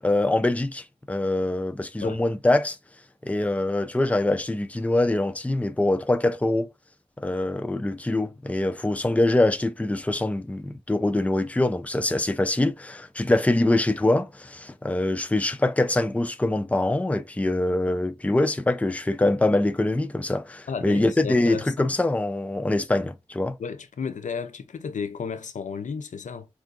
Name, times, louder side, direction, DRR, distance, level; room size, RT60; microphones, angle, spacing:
voice 1, 0.0-2.8 3.2-6.7 7.2-23.6, left 2 dB, 10° left, 0.4 m, -24 dB
voice 2, 20.7-21.9 23.6-26.5, left 6 dB, 85° left, 0.5 m, -33 dB
4.4 x 2.5 x 2.4 m
wide cardioid pair, 60°, 12 cm